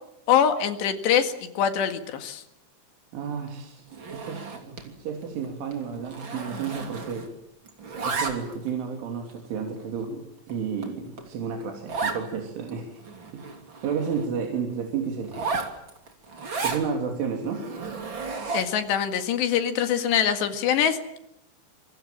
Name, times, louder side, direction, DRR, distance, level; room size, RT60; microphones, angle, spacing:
voice 1, 0.3-2.4 18.5-21.0, left 8 dB, 65° left, 8 dB, 3.9 m, -23 dB
voice 2, 3.1-7.3 7.9-13.0 13.3-13.5 13.8-15.7 16.6-17.7, right 6 dB, 75° right, 2 dB, 5.5 m, -32 dB
Zipper (clothing), 3.9-4.9 5.2-5.5 5.7-7.4 7.7-8.7 9.3-9.4 10.0-10.1 10.5-10.6 10.8-10.9 11.2-11.3 11.9-12.2 12.7-12.8 13.0-14.3 15.2-16.9 17.4-18.8, right 4 dB, 30° right, 2.9 m, -33 dB
27.5 x 23.5 x 7.5 m, 0.82 s
omnidirectional pair, 5.6 m